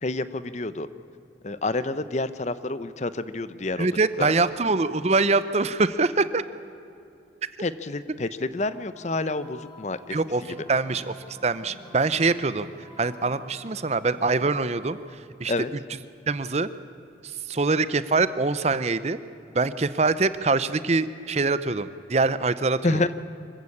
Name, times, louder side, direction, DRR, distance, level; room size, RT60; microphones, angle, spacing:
voice 1, 0.0-0.9 1.4-3.9 4.2-4.3 7.6-10.2 10.5-10.6 15.5-15.7 22.8-23.1, left 2 dB, 40° left, 14 dB, 0.7 m, -28 dB
voice 2, 3.8-6.4 10.1-10.4 10.7-12.7 13.0-15.5 16.3-16.7 17.2-19.2 19.5-23.0, right 3 dB, 35° right, 14 dB, 0.6 m, -24 dB
sound 1, 8.9-15.0, left 2 dB, 15° left, 6.3 m, -49 dB
25.0 x 15.5 x 8.5 m, 2.7 s
head